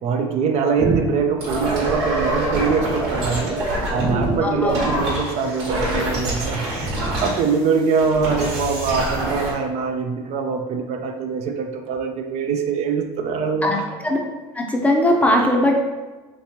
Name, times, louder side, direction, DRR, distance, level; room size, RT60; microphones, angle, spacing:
voice 1, 0.0-13.9, right 5 dB, 55° right, 4 dB, 0.4 m, -23 dB
sound 1, 0.8-9.5, right 1 dB, 90° right, 1.2 m, -25 dB
voice 2, 4.4-4.8 13.6-13.8 14.0-14.2 14.5-15.8, left 1 dB, 10° left, 1 dB, 0.5 m, -19 dB
3.4 x 2.9 x 2.8 m, 1.2 s
supercardioid pair, 105°, 13 cm